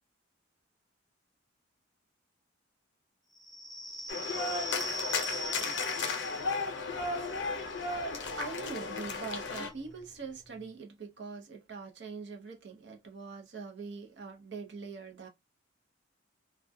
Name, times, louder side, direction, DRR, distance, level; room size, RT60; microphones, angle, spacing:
sound 1, 3.4-10.6, left 1 dB, ahead, 0.5 m, -42 dB
sound 2, 4.1-9.7, left 4 dB, 65° left, 0.6 m, -34 dB
voice 1, 7.7-15.3, right 4 dB, 60° right, 0.6 m, -43 dB
2.3 x 2.2 x 2.5 m
head